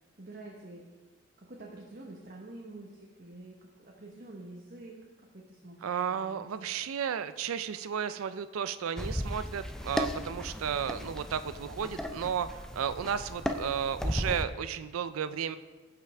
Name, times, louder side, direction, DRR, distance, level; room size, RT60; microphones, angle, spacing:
voice 1, 0.2-0.8 1.4-5.0 5.3-6.5, right 2 dB, 45° right, -2 dB, 1.0 m, -47 dB
voice 2, 5.8-12.5 12.7-15.6, right 8 dB, 90° right, 12 dB, 0.4 m, -33 dB
sound 1, 9.0-14.4, equal, 5° left, 0.4 m, -35 dB
16.0 x 5.8 x 3.4 m, 1.3 s
head